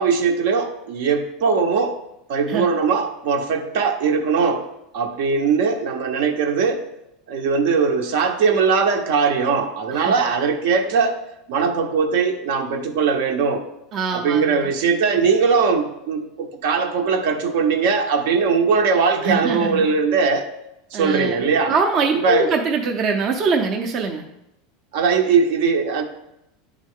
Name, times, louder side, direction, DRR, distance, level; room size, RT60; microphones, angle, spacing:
voice 1, 0.0-2.0 2.3-4.6 4.9-6.8 7.3-11.2 11.5-13.7 14.1-20.5 20.9-21.7 22.1-22.5 24.9-26.0, right 5 dB, 70° right, 5 dB, 0.8 m, -20 dB
voice 2, 13.9-14.7 19.2-19.9 20.9-24.2, right 4 dB, 40° right, 3 dB, 0.6 m, -23 dB
9.6 x 3.7 x 3.6 m, 0.84 s
supercardioid pair, 145°, 0 cm